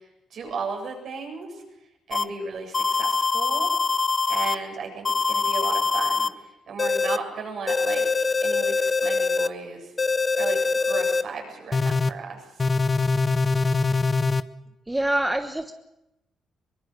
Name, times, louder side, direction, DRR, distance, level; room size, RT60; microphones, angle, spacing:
voice 1, 0.3-1.5 2.1-3.7 4.3-6.3 6.7-8.1 8.4-9.8 10.4-12.4, right 4 dB, 65° right, 1 dB, 7.5 m, -34 dB
sound 1, 2.1-2.2 2.7-4.6 5.1-6.3 6.8-7.2 7.7-9.5 10.0-11.2 11.7-12.1 12.6-14.4, left 4 dB, 30° left, 0.9 m, -23 dB
voice 2, 13.5-14.0 14.9-15.7, right 1 dB, 10° right, 7 dB, 1.2 m, -27 dB
23.0 x 20.0 x 6.7 m, 0.91 s
cardioid pair, 90°, 0 cm